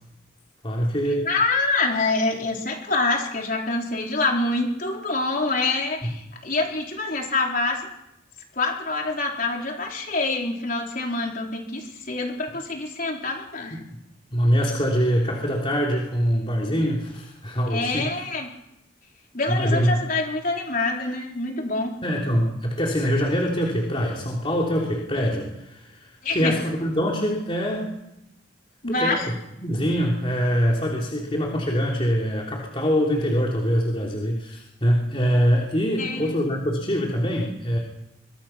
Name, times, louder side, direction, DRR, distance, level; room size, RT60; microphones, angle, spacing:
voice 1, 0.6-1.3 6.0-6.1 14.3-18.1 19.5-20.0 22.0-27.9 28.9-37.8, equal, 30° left, -2 dB, 3.5 m, -24 dB
voice 2, 1.2-7.8 8.6-13.8 17.7-18.5 19.3-21.9 26.2-26.5 28.8-29.3 36.0-36.4, left 3 dB, 45° left, 0 dB, 4.4 m, -26 dB
25.0 x 23.0 x 6.1 m, 0.84 s
head